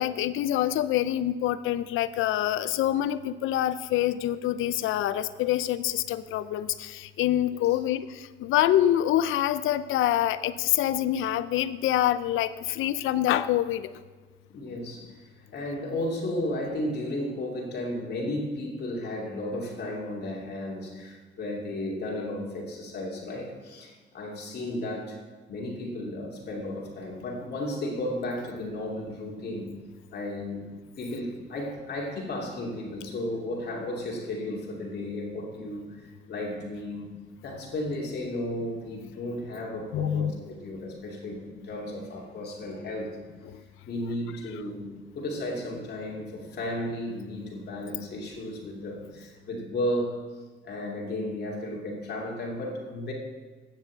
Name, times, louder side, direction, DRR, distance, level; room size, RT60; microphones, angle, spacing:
voice 1, 0.0-8.1 8.4-13.8 39.9-40.3, left 12 dB, 85° left, 15 dB, 0.5 m, -26 dB
voice 2, 14.5-15.1 15.5-25.2 25.5-29.7 30.1-30.7 31.0-35.8 36.3-37.1 37.4-43.2 43.8-50.2 50.6-53.1, left 1 dB, 55° left, -2 dB, 2.7 m, -34 dB
9.2 x 7.2 x 7.7 m, 1.3 s
cardioid pair, 90°, 20 cm